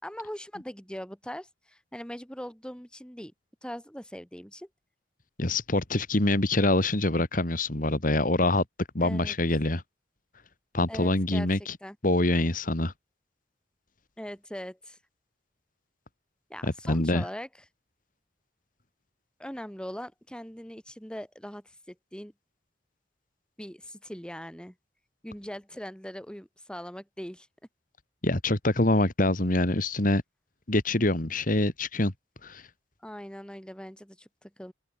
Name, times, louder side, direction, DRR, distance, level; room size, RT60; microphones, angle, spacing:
voice 1, 0.0-3.3 3.6-4.7 9.0-9.4 10.9-11.5 11.8-12.0 14.2-15.0 16.5-17.5 19.4-22.3 23.6-24.7 25.2-27.5 33.0-34.7, equal, 5° left, 2.8 m, -41 dB
voice 2, 5.4-8.6 8.9-9.8 10.7-11.8 12.0-12.9 16.6-17.2 28.2-30.2 30.7-32.1 32.4-32.6, left 2 dB, 50° left, 2.4 m, -25 dB
open air
head